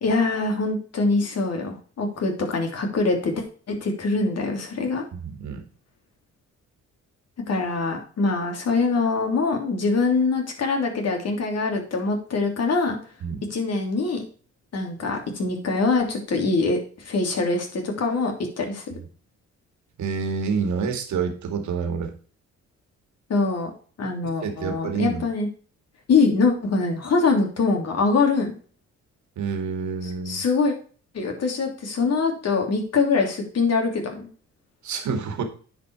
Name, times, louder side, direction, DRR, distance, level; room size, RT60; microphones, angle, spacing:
voice 1, 0.0-5.0 7.5-13.0 13.5-14.2 14.7-18.8 23.3-23.7 24.0-25.5 26.1-28.5 30.0-30.7 31.1-34.3, left 4 dB, 55° left, 2 dB, 3.0 m, -23 dB
voice 2, 5.1-5.7 13.2-13.4 20.0-22.1 24.4-25.2 29.4-30.4 34.8-35.4, right 5 dB, 70° right, 6 dB, 2.1 m, -28 dB
9.9 x 5.1 x 4.6 m, 0.41 s
cardioid pair, 90°, 30 cm